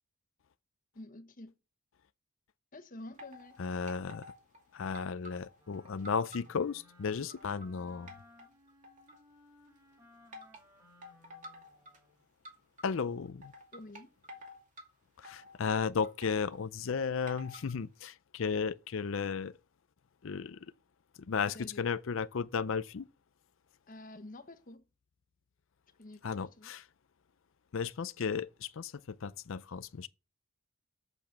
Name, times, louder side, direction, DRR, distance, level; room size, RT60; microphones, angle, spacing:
voice 1, 0.9-1.5 2.7-3.6 13.7-14.1 21.5-21.8 23.9-24.8 26.0-26.7, left 2 dB, 40° left, 1.1 m, -49 dB
sound 1, 3.2-3.6 3.9-4.6 4.9-6.6 7.0-7.7 8.1-9.3 10.3-10.6 11.0-12.0 12.4-12.8 13.4-14.9 15.2-16.6 17.3-17.7, left 1 dB, 35° right, 2.3 m, -50 dB
voice 2, 3.6-4.3 4.7-8.1 12.8-13.5 15.2-19.5 20.2-20.7 21.3-23.1 26.2-26.9 27.7-30.1, left 5 dB, 60° left, 0.5 m, -34 dB
Wind instrument woodwind instrument, 5.6-12.2, left 1 dB, 15° right, 3.2 m, -62 dB
8.0 x 6.9 x 7.2 m
head